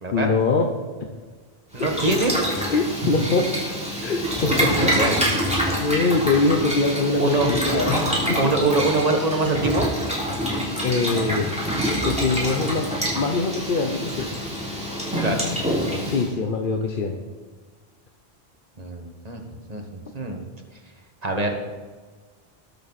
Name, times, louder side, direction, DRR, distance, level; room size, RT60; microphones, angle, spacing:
voice 1, 0.1-0.7 1.0-1.1 1.8-2.2 2.7-3.5 4.0-4.9 5.8-8.0 8.3-8.5 10.8-11.5 12.0-12.9 13.1-14.3 16.0-17.2, left 3 dB, 55° left, 3 dB, 1.0 m, -23 dB
Boiling, 1.7-16.3, equal, 5° right, 3.3 m, -26 dB
voice 2, 1.7-2.3 4.4-5.3 7.2-7.5 8.4-9.9 15.2-15.5 18.8-20.4 21.2-21.6, right 2 dB, 40° right, 2 dB, 1.7 m, -24 dB
20.0 x 7.0 x 4.2 m, 1.4 s
omnidirectional pair, 1.1 m